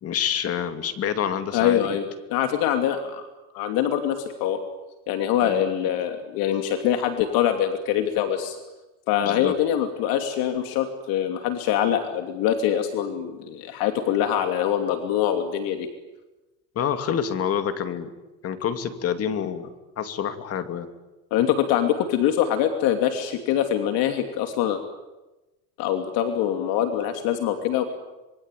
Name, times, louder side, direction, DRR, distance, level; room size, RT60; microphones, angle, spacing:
voice 1, 0.0-1.8 5.4-5.6 9.2-9.6 16.7-18.1 18.4-20.9, left 8 dB, 40° left, 9 dB, 2.6 m, -27 dB
voice 2, 1.5-2.0 2.3-3.2 3.5-4.6 5.1-8.6 9.1-15.9 21.3-24.8 25.8-27.8, left 10 dB, 70° left, 6 dB, 3.0 m, -24 dB
26.5 x 22.5 x 9.3 m, 1.1 s
cardioid pair, 140°, 37 cm